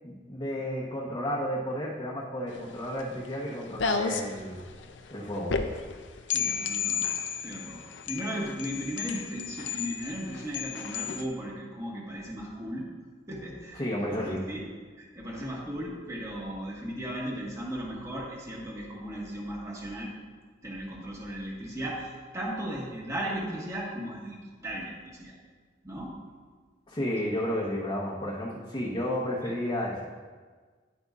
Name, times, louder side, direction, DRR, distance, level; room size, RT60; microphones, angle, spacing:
voice 1, 0.0-4.6 5.1-5.6 13.7-14.4 26.9-30.0, equal, 25° left, -6 dB, 1.0 m, -32 dB
sound 1, 2.5-11.3, left 6 dB, 75° left, 0.5 m, -33 dB
voice 2, 6.3-7.1 7.4-12.9 13.3-14.7 15.0-20.1 20.6-22.1 22.3-24.4 24.6-25.4 25.8-26.1 29.4-29.5, equal, 15° right, -4 dB, 1.5 m, -36 dB
10.5 x 7.9 x 2.4 m, 1.5 s
head